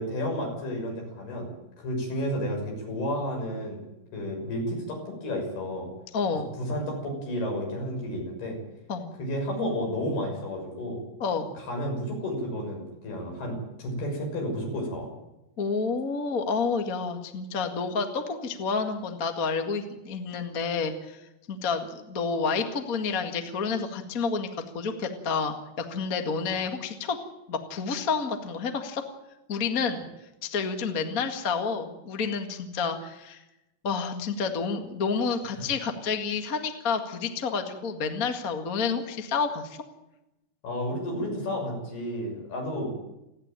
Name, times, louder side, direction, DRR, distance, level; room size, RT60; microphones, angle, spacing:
voice 1, 0.0-1.5 1.8-3.8 4.1-5.9 6.3-8.6 9.2-11.0 11.7-15.1 40.6-42.9, equal, 65° left, 1 dB, 8.2 m, -31 dB
voice 2, 6.1-6.5 8.9-9.1 11.2-11.5 15.6-21.2 21.5-24.5 24.7-27.2 27.5-29.0 29.5-30.0 30.4-33.4 33.8-39.8, left 5 dB, 40° left, 5 dB, 1.2 m, -29 dB
29.5 x 10.5 x 9.1 m, 0.92 s
omnidirectional pair, 4.8 m